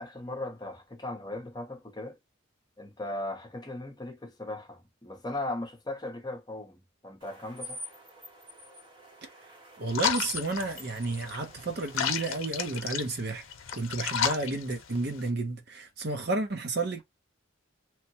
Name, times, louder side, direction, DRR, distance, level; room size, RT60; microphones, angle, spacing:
voice 1, 0.0-2.2 2.8-7.8, left 2 dB, 20° left, 0.8 m, -38 dB
sound 1, 7.2-12.3, left 1 dB, 25° right, 0.9 m, -46 dB
voice 2, 9.8-13.4 13.7-17.0, right 2 dB, 50° right, 0.7 m, -31 dB
sound 2, 9.9-15.3, left 8 dB, 80° left, 0.6 m, -33 dB
3.0 x 2.2 x 2.8 m
head